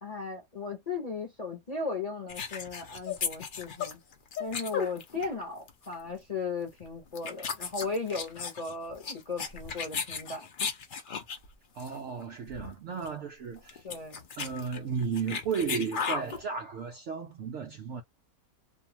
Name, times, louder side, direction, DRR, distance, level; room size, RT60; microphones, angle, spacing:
voice 1, 0.0-4.0 4.4-10.5 13.8-14.3, left 4 dB, 35° left, 0.7 m, -36 dB
sound 1, 2.3-5.4 5.7-5.9 6.7-6.8 7.1-11.5 11.8-12.0 12.2-12.3 12.5-12.7 13.0-13.1 13.6-16.4, left 6 dB, 80° left, 0.4 m, -35 dB
voice 2, 11.7-13.9 14.4-18.0, right 6 dB, 90° right, 0.6 m, -34 dB
2.6 x 2.4 x 2.8 m
omnidirectional pair, 1.8 m